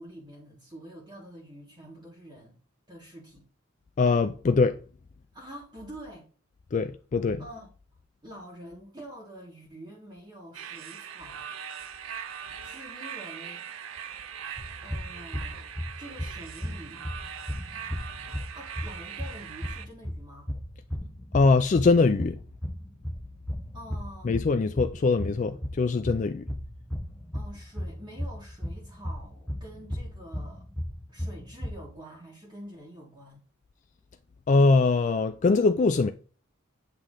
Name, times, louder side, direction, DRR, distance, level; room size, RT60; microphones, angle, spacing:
voice 1, 0.0-2.6 2.9-3.5 5.3-6.3 7.4-7.7 8.2-11.5 12.6-13.6 14.8-15.7 16.0-17.1 18.3-20.5 23.7-24.4 27.3-30.7 31.1-33.4, right 1 dB, 20° right, 1.5 m, -46 dB
voice 2, 4.0-4.8 6.7-7.4 21.3-22.4 24.2-26.4 34.5-36.1, left 3 dB, 35° left, 0.3 m, -22 dB
sound 1, 10.5-19.9, right 8 dB, 80° right, 0.6 m, -41 dB
sound 2, 14.6-31.9, equal, 5° left, 0.7 m, -36 dB
8.2 x 3.1 x 3.7 m
head